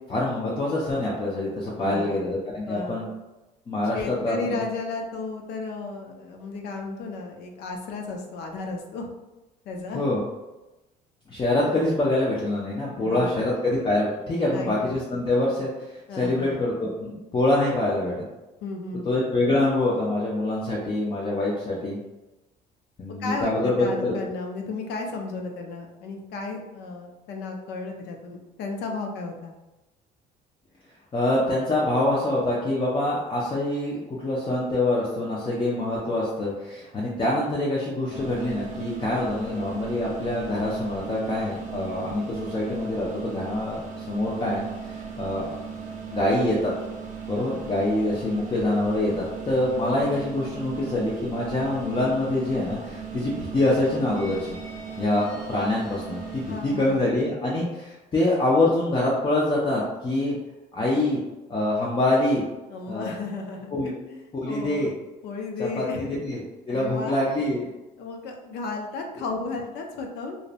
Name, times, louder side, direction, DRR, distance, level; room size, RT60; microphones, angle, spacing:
voice 1, 0.1-3.1 3.7-4.6 9.9-10.2 11.3-18.2 19.0-22.0 23.0-24.1 31.1-45.5 46.1-46.7 47.3-54.6 55.0-60.4 60.7-61.2 61.5-62.4 62.9-63.1 63.7-63.9 64.3-64.9 65.6-67.7, left 1 dB, 30° left, -6 dB, 0.5 m, -25 dB
voice 2, 1.8-2.2 2.7-3.1 3.9-9.1 9.6-10.0 12.9-13.5 14.5-14.9 16.1-16.6 18.6-19.1 23.2-29.5 56.4-57.0 62.7-63.7 64.1-64.9 65.2-66.0 66.7-67.2 68.0-70.4, left 3 dB, 80° left, 3 dB, 0.5 m, -34 dB
sound 1, 38.1-57.0, right 6 dB, 45° right, 0.6 m, -37 dB
2.6 x 2.0 x 2.5 m, 1.0 s
cardioid pair, 110°, 17 cm